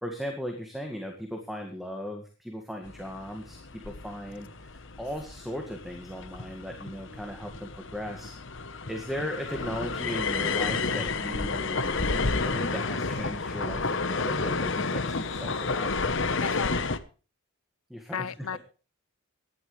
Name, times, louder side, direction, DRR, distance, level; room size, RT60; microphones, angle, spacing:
voice 1, 0.0-8.4 8.9-15.9 17.9-18.3, equal, ahead, 1.9 m, -37 dB
sound 1, 2.9-17.0, left 4 dB, 55° left, 1.0 m, -31 dB
voice 2, 16.4-16.9 18.1-18.6, left 6 dB, 80° left, 0.8 m, -34 dB
19.0 x 12.0 x 3.3 m
head